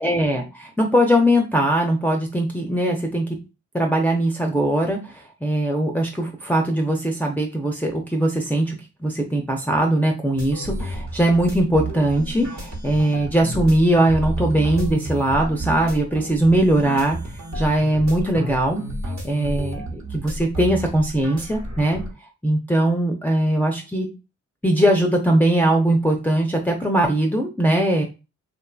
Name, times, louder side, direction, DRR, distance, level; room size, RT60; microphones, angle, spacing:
voice 1, 0.0-3.2 3.7-8.8 9.0-17.2 17.5-18.8 19.2-22.0 22.4-24.1 24.6-28.0, right 1 dB, 5° left, 1 dB, 0.6 m, -20 dB
sound 1, 10.4-22.1, right 1 dB, 60° right, 1.2 m, -31 dB
2.6 x 2.5 x 2.3 m, 0.28 s
supercardioid pair, 45°, 32 cm